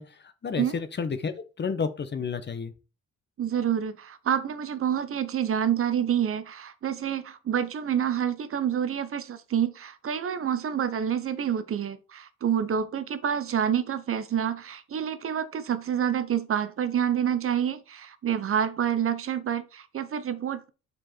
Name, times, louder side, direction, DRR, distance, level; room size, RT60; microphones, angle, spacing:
voice 1, 0.0-2.7, left 5 dB, 35° left, 0.9 m, -31 dB
voice 2, 3.4-20.7, right 9 dB, 45° right, 0.8 m, -28 dB
6.3 x 4.6 x 4.3 m
cardioid pair, 90°, 30 cm